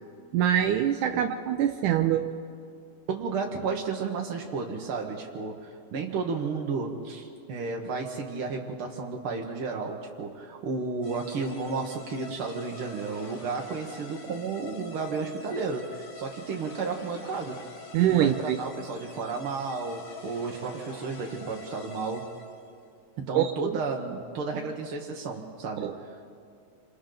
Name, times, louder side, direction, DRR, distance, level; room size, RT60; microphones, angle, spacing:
voice 1, 0.3-2.3 17.9-18.6 23.4-23.8 25.8-25.9, right 10 dB, 75° right, 7 dB, 1.9 m, -24 dB
voice 2, 3.1-17.6 18.1-22.3 23.2-25.9, right 4 dB, 60° right, 0 dB, 1.4 m, -32 dB
sound 1, 11.0-22.7, left 3 dB, 85° left, 4.3 m, -46 dB
28.0 x 27.0 x 3.9 m, 2.3 s
omnidirectional pair, 4.0 m